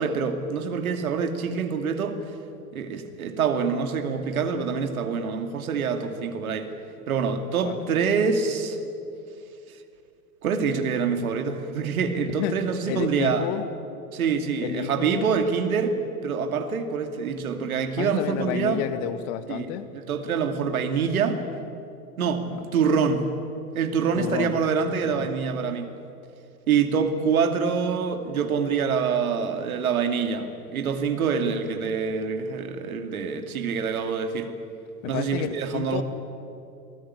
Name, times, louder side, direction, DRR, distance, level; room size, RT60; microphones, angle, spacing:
voice 1, 0.0-2.2 2.7-6.7 7.1-8.8 10.4-13.5 14.1-16.0 16.2-18.8 19.5-21.4 22.2-22.4 22.7-23.3 23.7-25.9 26.7-34.5 35.0-36.0, right 6 dB, 70° right, 7 dB, 2.7 m, -25 dB
voice 2, 12.9-13.6 14.6-15.3 17.9-19.9 22.5-22.7 24.1-24.5 24.9-25.3 35.0-36.0, left 11 dB, 45° left, 11 dB, 1.9 m, -31 dB
27.5 x 19.5 x 9.9 m, 2.6 s
figure-of-eight pair, 85°, 45 cm